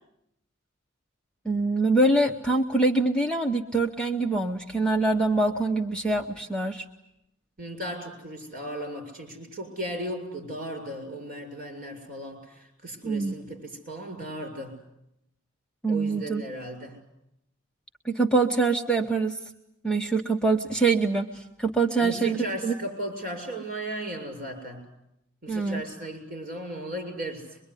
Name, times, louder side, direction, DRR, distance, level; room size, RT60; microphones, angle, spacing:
voice 1, 1.4-6.8 13.0-13.3 15.8-16.4 18.0-19.4 19.8-22.7 25.5-25.8, right 3 dB, 5° left, 2 dB, 1.0 m, -24 dB
voice 2, 7.6-14.8 15.9-17.0 22.0-24.8 25.4-27.6, right 1 dB, 45° right, 4 dB, 7.1 m, -36 dB
23.5 x 23.0 x 9.9 m, 0.82 s
head